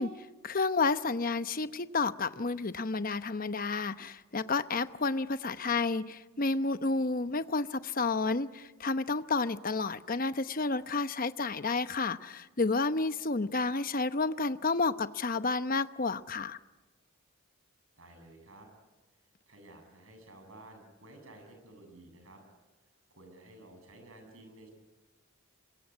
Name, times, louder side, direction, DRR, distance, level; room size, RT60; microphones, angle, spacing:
voice 1, 0.0-16.6, left 3 dB, 40° left, 0.9 m, -31 dB
voice 2, 18.0-18.7 19.5-22.4 22.8-24.7, right 1 dB, 70° right, 7.6 m, -53 dB
26.0 x 23.5 x 9.6 m
head